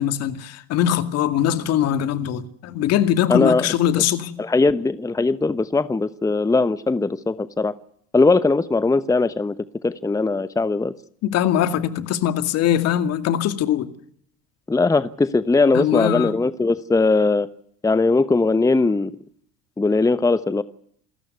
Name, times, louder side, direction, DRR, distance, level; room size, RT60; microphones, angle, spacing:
voice 1, 0.0-4.3 11.2-13.9 15.7-16.4, left 10 dB, 60° left, 2.3 m, -21 dB
voice 2, 3.3-3.7 4.4-7.7 8.1-9.5 9.8-10.9 14.7-17.5 17.8-19.1 19.8-20.6, left 3 dB, 10° left, 0.9 m, -19 dB
27.5 x 13.5 x 9.5 m
hypercardioid pair, 85°, 29 cm